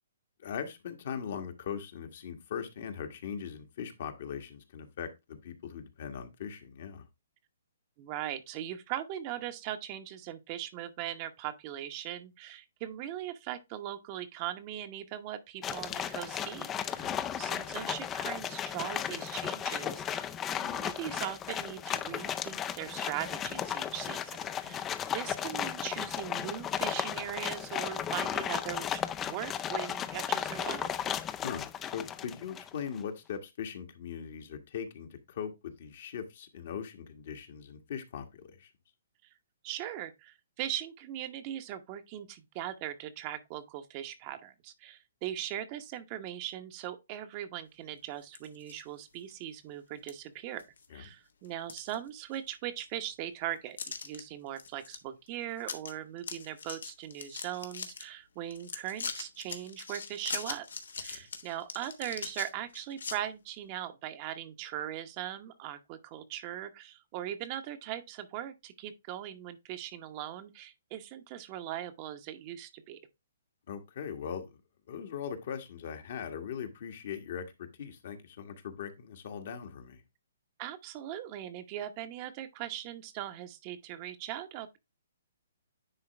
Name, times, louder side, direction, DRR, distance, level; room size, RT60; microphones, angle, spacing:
voice 1, 0.4-7.0 17.0-17.1 24.6-24.9 31.4-38.7 50.9-51.0 61.1-61.2 73.7-74.5 74.9-80.0, left 7 dB, 55° left, 1.5 m, -40 dB
voice 2, 8.0-30.9 39.6-50.6 50.9-53.8 54.0-60.7 61.0-73.0 80.6-84.8, right 12 dB, 35° right, 0.9 m, -40 dB
sound 1, 15.6-32.8, left 9 dB, 20° left, 0.4 m, -35 dB
sound 2, 48.2-48.8 49.3-49.4 50.1-50.2 50.6-51.1 51.4-52.5 52.8-52.9 53.8-54.2 54.6-55.0 55.3-55.4 55.6-55.9 56.2-58.0 58.5-63.2, left 5 dB, 80° left, 1.3 m, -41 dB
9.8 x 3.8 x 3.3 m
hypercardioid pair, 145°, 0 cm